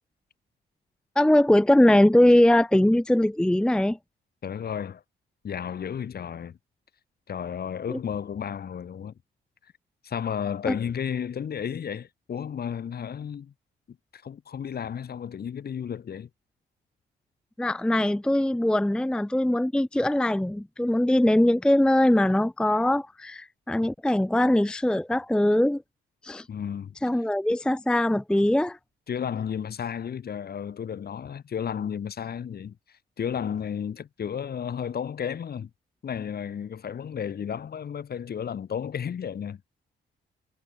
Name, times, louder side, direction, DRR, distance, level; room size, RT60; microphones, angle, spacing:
voice 1, 1.2-4.0 7.9-8.0 10.7-10.8 17.6-25.8 26.2-26.5 27.0-28.8, left 1 dB, 5° left, 0.6 m, -21 dB
voice 2, 4.4-5.0 5.4-6.6 7.3-9.1 10.0-13.5 14.1-16.3 26.5-27.0 29.1-35.7 36.0-39.6, left 8 dB, 50° left, 3.1 m, -33 dB
cardioid pair, 90°, 20 cm